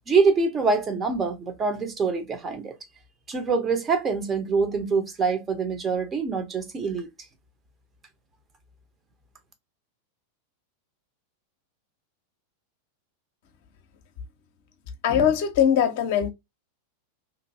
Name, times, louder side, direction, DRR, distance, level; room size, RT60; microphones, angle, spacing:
voice 1, 0.1-2.7 3.3-7.1, right 4 dB, 20° right, 0.7 m, -25 dB
voice 2, 15.0-16.3, left 8 dB, 50° left, 0.6 m, -21 dB
3.0 x 2.6 x 2.6 m
figure-of-eight pair, 90°, 0 cm